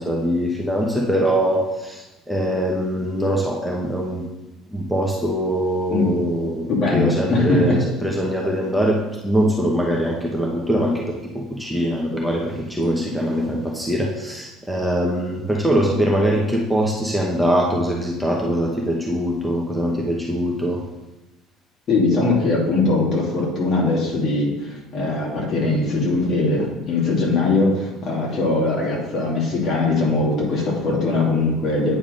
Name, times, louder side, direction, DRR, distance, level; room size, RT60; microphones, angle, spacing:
voice 1, 0.0-4.2 4.7-11.0 11.3-20.8, equal, 5° right, -3 dB, 0.9 m, -22 dB
voice 2, 6.7-7.8 21.9-32.0, left 3 dB, 45° left, -3 dB, 2.4 m, -21 dB
9.0 x 3.5 x 5.0 m, 1.0 s
cardioid pair, 110°, 0 cm